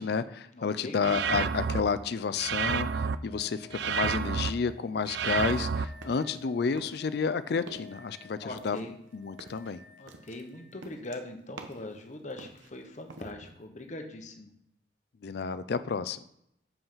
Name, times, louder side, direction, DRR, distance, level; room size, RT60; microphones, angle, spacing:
voice 1, 0.0-8.9 9.1-9.8 15.2-16.2, left 5 dB, 60° left, 13 dB, 0.4 m, -31 dB
voice 2, 0.5-1.0 8.4-9.0 10.0-14.5, left 1 dB, 40° left, 5 dB, 1.0 m, -41 dB
sound 1, 1.0-10.8 13.2-13.3, left 5 dB, 10° right, 1.4 m, -55 dB
sound 2, 1.0-1.8 2.4-3.2 3.7-4.5 5.1-5.9, right 6 dB, 60° right, 0.4 m, -29 dB
sound 3, 5.3-6.5 6.8-7.3 7.6-8.0 8.5-12.0 12.3-13.3, right 3 dB, 85° right, 1.0 m, -49 dB
7.1 x 5.6 x 5.6 m, 0.76 s
head